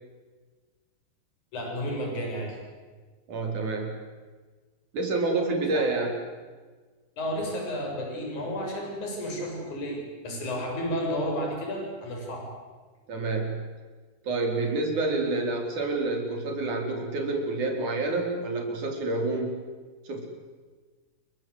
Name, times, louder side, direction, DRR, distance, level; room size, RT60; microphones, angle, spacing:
voice 1, 1.5-2.6 5.7-5.8 7.2-12.5 15.1-15.2, equal, 45° left, 0 dB, 8.0 m, -32 dB
voice 2, 3.3-3.9 4.9-6.2 13.1-13.6 14.2-19.5 20.1-20.3, right 3 dB, 45° right, 2 dB, 5.6 m, -28 dB
28.5 x 24.0 x 8.2 m, 1.4 s
omnidirectional pair, 5.0 m